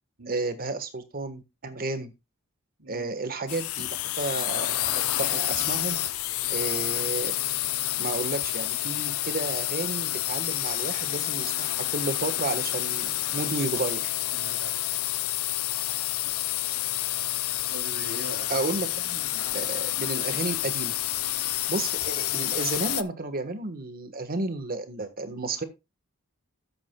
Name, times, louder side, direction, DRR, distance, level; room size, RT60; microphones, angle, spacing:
voice 1, 0.3-2.1 2.9-6.0 6.5-7.4 8.0-14.0 18.5-20.9 21.7-25.6, right 3 dB, 45° right, 9 dB, 1.4 m, -32 dB
voice 2, 2.8-3.1 13.4-13.9 14.3-14.7 17.7-18.5, right 1 dB, 75° right, 4 dB, 3.3 m, -42 dB
sound 1, 3.5-23.0, left 15 dB, 80° left, 0.6 m, -29 dB
12.5 x 8.5 x 2.3 m, 0.25 s
head